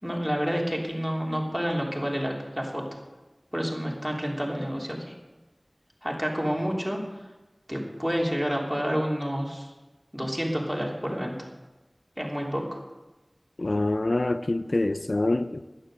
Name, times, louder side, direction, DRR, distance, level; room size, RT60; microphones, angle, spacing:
voice 1, 0.0-3.0 3.5-5.1 6.0-7.2 7.7-9.7 10.1-11.5 12.2-12.8, equal, 5° right, -2 dB, 3.3 m, -29 dB
voice 2, 13.6-15.6, left 2 dB, 65° left, 10 dB, 0.5 m, -25 dB
11.5 x 10.0 x 6.6 m, 1.1 s
wide cardioid pair, 45°, 0 cm